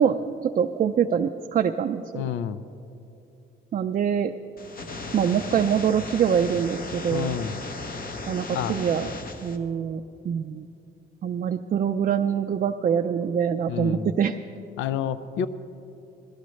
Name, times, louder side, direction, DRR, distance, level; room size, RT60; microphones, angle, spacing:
voice 1, 0.0-2.2 3.7-4.3 5.1-7.4 8.3-9.1 9.4-10.7 11.2-14.4, right 8 dB, 40° right, 6 dB, 0.4 m, -24 dB
voice 2, 2.1-2.6 7.1-7.6 8.5-8.8 13.7-14.1 14.8-15.5, left 9 dB, 75° left, 13 dB, 0.5 m, -29 dB
sound 1, 4.6-9.6, left 3 dB, 45° left, 1.1 m, -36 dB
19.0 x 13.0 x 3.2 m, 2.7 s
cardioid pair, 90°, 20 cm